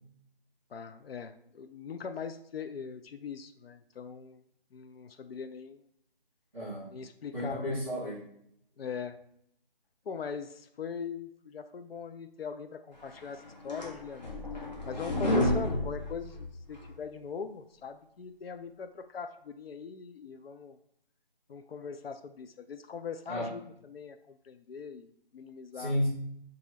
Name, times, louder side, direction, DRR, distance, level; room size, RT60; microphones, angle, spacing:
voice 1, 0.7-4.4 4.7-5.8 6.9-7.7 8.8-9.2 10.1-14.3 14.9-20.8 21.5-26.0, left 6 dB, 85° left, 8 dB, 0.5 m, -41 dB
voice 2, 6.5-6.9 7.3-8.2 23.3-23.6 25.7-26.1, equal, 5° left, -12 dB, 1.1 m, -32 dB
sound 1, 13.2-16.9, left 1 dB, 50° left, 0.9 m, -31 dB
2.9 x 2.6 x 4.0 m, 0.72 s
figure-of-eight pair, 180°, 29 cm